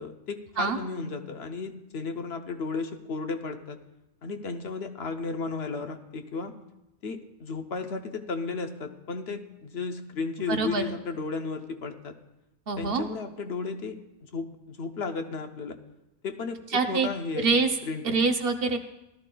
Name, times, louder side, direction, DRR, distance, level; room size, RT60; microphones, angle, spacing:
voice 1, 0.0-3.8 4.2-6.5 7.0-12.1 12.8-15.8 16.2-17.5 17.8-18.3, left 4 dB, 65° left, 6 dB, 1.1 m, -34 dB
voice 2, 10.5-10.8 12.7-13.1 16.7-17.1 17.4-17.7 18.0-18.8, right 4 dB, 55° right, 6 dB, 1.0 m, -25 dB
17.5 x 13.0 x 2.3 m, 0.94 s
omnidirectional pair, 1.2 m